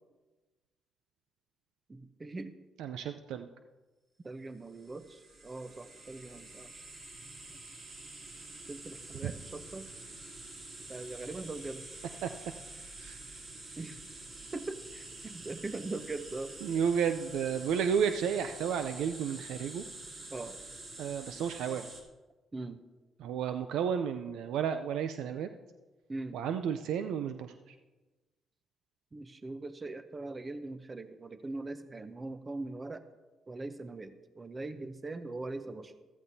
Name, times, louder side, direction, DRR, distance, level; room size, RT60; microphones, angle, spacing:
voice 1, 1.9-2.5 4.2-6.8 8.7-9.9 10.9-11.9 13.8-14.0 14.5-16.5 20.3-20.6 22.5-22.8 26.1-26.4 29.1-33.0 33.5-35.9, right 2 dB, 25° right, 11 dB, 0.7 m, -41 dB
voice 2, 2.8-3.5 9.2-9.3 12.2-12.3 13.0-13.2 16.6-19.8 21.0-21.9 23.2-25.5 26.3-27.5, right 7 dB, 85° right, 8 dB, 0.5 m, -32 dB
sound 1, 4.7-22.0, right 2 dB, 55° right, 2.8 m, -47 dB
14.5 x 13.5 x 2.7 m, 1.2 s
cardioid pair, 90°, 0 cm